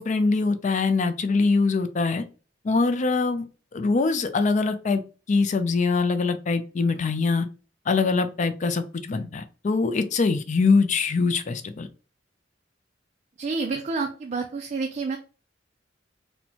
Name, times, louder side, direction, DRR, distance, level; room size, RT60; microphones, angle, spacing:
voice 1, 0.0-2.2 2.6-3.5 3.7-5.0 5.3-7.5 7.9-11.9, left 4 dB, 40° left, 10 dB, 0.4 m, -23 dB
voice 2, 13.4-15.2, right 4 dB, 40° right, 4 dB, 0.4 m, -29 dB
4.3 x 2.1 x 2.7 m, 0.35 s
head